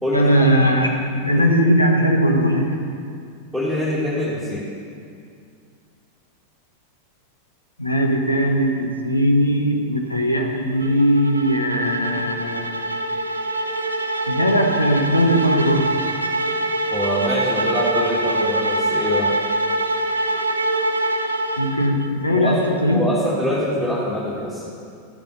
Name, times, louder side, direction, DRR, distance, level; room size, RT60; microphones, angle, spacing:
voice 1, 0.1-2.7 7.8-12.9 14.3-16.0 21.6-23.2, equal, 85° left, 2 dB, 1.2 m, -19 dB
voice 2, 3.5-4.7 16.9-19.4 22.3-24.7, left 1 dB, 5° left, -11 dB, 2.4 m, -24 dB
sound 1, 10.8-22.1, right 2 dB, 80° right, 0.6 m, -24 dB
13.0 x 7.3 x 5.7 m, 2.3 s
figure-of-eight pair, 90°, 0 cm